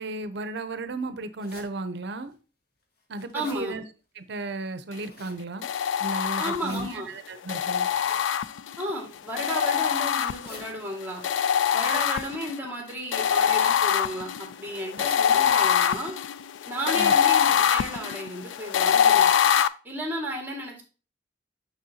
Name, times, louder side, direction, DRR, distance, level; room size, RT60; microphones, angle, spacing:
voice 1, 0.0-2.3 3.1-3.8 4.2-5.7 6.0-7.9 16.9-17.1, right 2 dB, 65° right, 0.6 m, -34 dB
sound 1, 1.4-1.7 2.3-2.4 2.8-3.6 4.7-5.4 6.4-6.8 7.8-8.2 9.0-9.4 10.1-10.6 11.7-12.7 13.4-13.8 14.5-14.7 15.7-16.0 16.3-16.4 16.7-16.8 17.3-17.8 18.2-18.3 18.6-18.7 19.2-19.3 19.6-19.7, left 2 dB, 60° left, 1.5 m, -48 dB
voice 2, 3.3-3.8 6.4-7.1 8.8-11.2 11.7-16.1 16.7-19.3 19.8-20.8, equal, 10° right, 1.9 m, -33 dB
sound 2, 5.6-6.9 7.5-8.8 9.4-10.7 11.2-12.6 13.1-19.7, left 8 dB, 85° left, 0.3 m, -23 dB
6.6 x 6.2 x 2.7 m
head